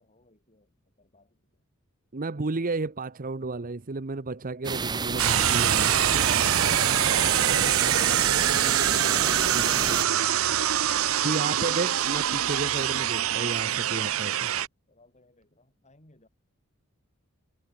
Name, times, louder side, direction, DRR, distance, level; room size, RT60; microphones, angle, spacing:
voice 1, 0.0-1.6 2.2-2.5 14.9-16.3, left 2 dB, 35° left, 7.2 m, -60 dB
voice 2, 2.1-6.2 9.5-9.8 11.2-14.5, right 3 dB, 40° right, 0.9 m, -32 dB
sound 1, 4.6-10.0, right 5 dB, 20° right, 0.4 m, -30 dB
sound 2, 5.2-14.7, right 11 dB, 80° right, 0.7 m, -24 dB
head